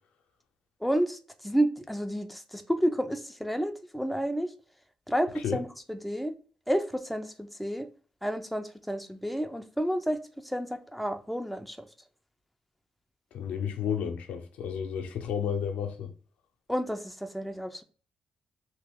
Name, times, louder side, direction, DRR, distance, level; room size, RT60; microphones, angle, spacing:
voice 1, 0.8-4.5 5.1-6.3 6.7-7.9 8.2-10.2 10.4-11.9 16.7-17.8, equal, ahead, 0.5 m, -30 dB
voice 2, 13.3-16.1, left 8 dB, 90° left, 0.6 m, -32 dB
2.9 x 2.8 x 3.5 m
cardioid pair, 65°, 2 cm